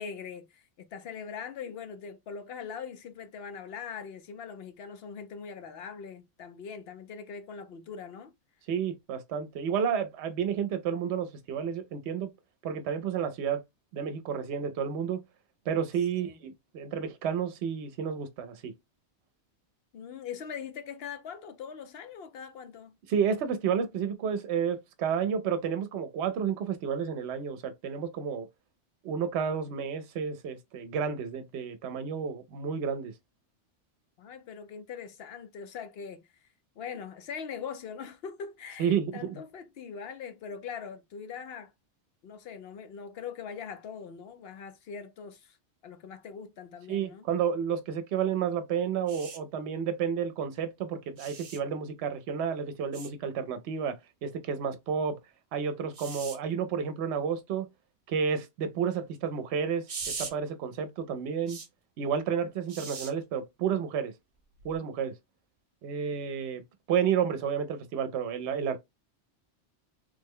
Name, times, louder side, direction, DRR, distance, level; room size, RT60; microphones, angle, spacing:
voice 1, 0.0-8.3 16.1-16.4 19.9-22.9 34.2-36.5 36.8-41.7 42.2-45.6 45.8-47.3, left 6 dB, 65° left, 0.8 m, -42 dB
voice 2, 8.7-12.3 12.6-13.6 13.9-15.2 15.7-18.7 23.1-28.5 29.0-33.1 38.8-39.4 46.9-55.2 55.5-57.7 58.1-61.6 62.0-64.1 64.6-65.1 65.8-66.6 66.9-68.8, right 7 dB, 70° right, 0.8 m, -31 dB
sound 1, 49.1-49.4 51.2-51.6 52.9-53.1 55.9-56.4 59.9-60.3 61.5-61.7 62.7-63.1 64.6-64.8, right 5 dB, 40° right, 0.5 m, -39 dB
3.3 x 2.1 x 3.5 m
omnidirectional pair, 1.2 m